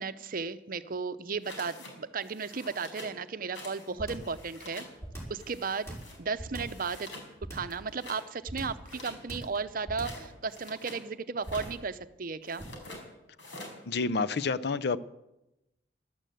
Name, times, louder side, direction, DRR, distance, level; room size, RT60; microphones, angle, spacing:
voice 1, 0.0-4.8 5.3-7.1 7.5-12.6, right 5 dB, 50° right, 13 dB, 0.7 m, -35 dB
sound 1, 1.4-1.9 2.2-3.2 3.5-4.9 5.4-6.2 6.5-7.3 7.7-8.2 8.8-11.0 11.4-11.8 12.4-13.0 13.4-13.8, left 2 dB, 80° left, 4.6 m, -46 dB
sound 2, 4.0-4.4 5.0-5.4 5.9-6.8 7.4-7.8 8.5-8.9 9.3-9.6 9.9-10.3 11.4-11.8 12.6-12.9, right 1 dB, 15° left, 4.9 m, -40 dB
voice 2, 13.9-15.0, left 4 dB, 60° left, 14 dB, 0.6 m, -29 dB
13.5 x 12.0 x 7.8 m, 0.93 s
head